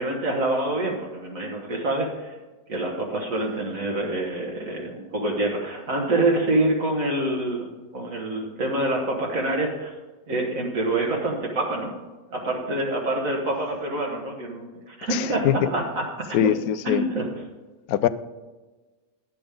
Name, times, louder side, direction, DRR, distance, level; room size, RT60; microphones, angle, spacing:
voice 1, 0.0-2.3 2.7-9.9 10.3-11.9 12.3-16.4 16.8-17.3, right 2 dB, 65° right, -1 dB, 1.8 m, -26 dB
voice 2, 15.1-15.6 16.3-17.0 17.9-18.1, left 11 dB, 90° left, 14 dB, 1.1 m, -22 dB
11.0 x 7.9 x 5.0 m, 1.2 s
omnidirectional pair, 1.5 m